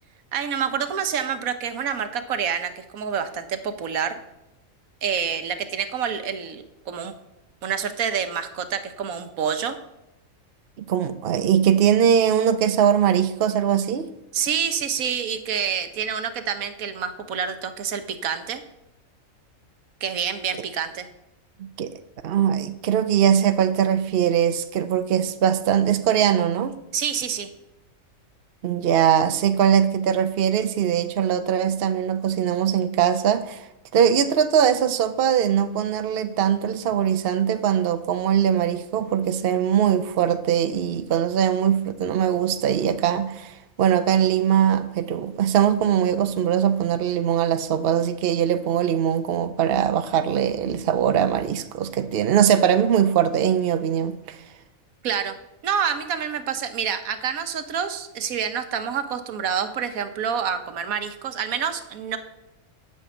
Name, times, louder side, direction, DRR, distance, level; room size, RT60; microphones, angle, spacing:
voice 1, 0.3-4.2 5.0-7.1 7.6-9.8 14.3-18.6 20.0-21.1 26.9-27.5 55.0-55.4 55.6-62.2, right 7 dB, 85° right, 1.3 m, -27 dB
voice 2, 10.8-14.1 21.6-21.9 22.2-26.7 28.6-33.7 33.9-54.4, right 9 dB, 50° right, 0.8 m, -21 dB
9.1 x 5.6 x 8.0 m
omnidirectional pair, 1.4 m